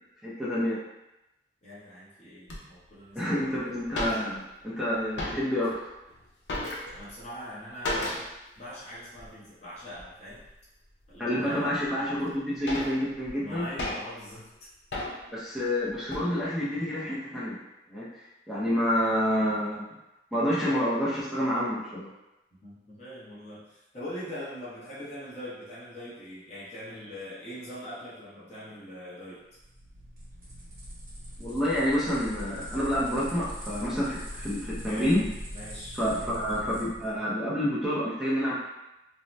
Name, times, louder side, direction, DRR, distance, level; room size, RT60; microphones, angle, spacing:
voice 1, 0.2-0.8 3.2-5.8 11.2-13.7 15.3-17.5 17.9-18.1 18.5-19.9 20.3-22.1 31.4-35.2 35.9-38.5, equal, ahead, -10 dB, 0.5 m, -28 dB
voice 2, 1.6-3.8 5.6-5.7 6.9-8.3 8.6-10.4 11.1-11.7 13.4-14.7 22.6-29.4 34.8-35.2 35.5-36.0, equal, 40° left, -9 dB, 0.8 m, -42 dB
sound 1, 2.5-2.6 3.3-3.4 3.6-3.7 3.8-4.7 5.0-5.7 6.1-7.2 7.8-8.4 8.7-8.8 9.2-9.4 10.0-10.5 11.0-11.1 11.8-11.9 12.3-14.3 14.9-15.4 15.8-16.3, left 1 dB, 85° left, 0.6 m, -35 dB
sound 2, 29.5-37.1, equal, 50° right, 0.9 m, -41 dB
2.6 x 2.1 x 3.1 m, 0.96 s
head